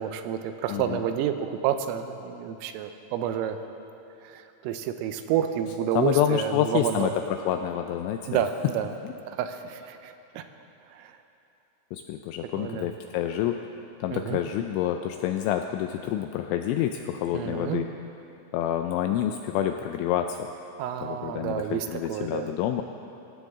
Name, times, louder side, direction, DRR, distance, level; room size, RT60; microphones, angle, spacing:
voice 1, 0.0-3.6 4.2-7.1 8.3-8.9 9.3-10.4 10.9-11.1 12.5-12.9 14.1-14.4 17.3-17.8 20.8-22.5, right 9 dB, 85° right, 8 dB, 3.4 m, -29 dB
voice 2, 0.7-1.0 6.0-7.1 7.5-8.4 9.0-9.1 11.9-13.6 14.0-17.9 18.5-20.4 21.0-22.8, left 11 dB, 85° left, 6 dB, 2.7 m, -28 dB
24.5 x 16.0 x 3.7 m, 2.9 s
omnidirectional pair, 6.0 m